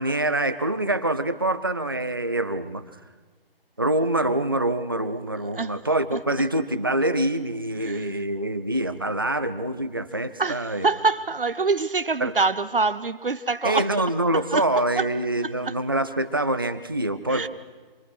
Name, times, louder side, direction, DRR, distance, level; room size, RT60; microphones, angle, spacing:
voice 1, 0.0-2.8 3.8-10.9 12.2-12.3 13.6-17.5, right 1 dB, 25° right, 12 dB, 0.6 m, -25 dB
voice 2, 7.8-8.2 10.4-13.9 14.3-14.6 15.0-15.1 15.4-15.7 17.3-17.5, right 4 dB, 65° right, 11 dB, 0.8 m, -25 dB
26.5 x 20.5 x 6.2 m, 1.4 s
figure-of-eight pair, 155°, 29 cm